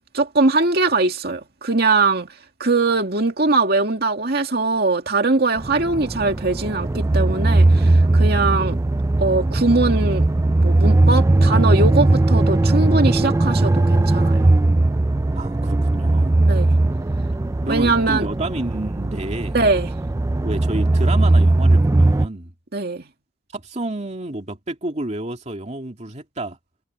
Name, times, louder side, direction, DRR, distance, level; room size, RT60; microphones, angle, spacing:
voice 1, 0.1-2.3 2.6-8.8 9.2-10.2 10.6-14.5 16.5-16.7 17.7-18.3 19.5-19.9 22.7-23.0, right 3 dB, 55° right, 2.3 m, -21 dB
sound 1, 5.6-22.3, right 2 dB, 15° right, 0.3 m, -18 dB
voice 2, 15.3-16.4 17.7-19.6 20.4-22.5 23.5-26.6, right 2 dB, 35° right, 2.5 m, -29 dB
head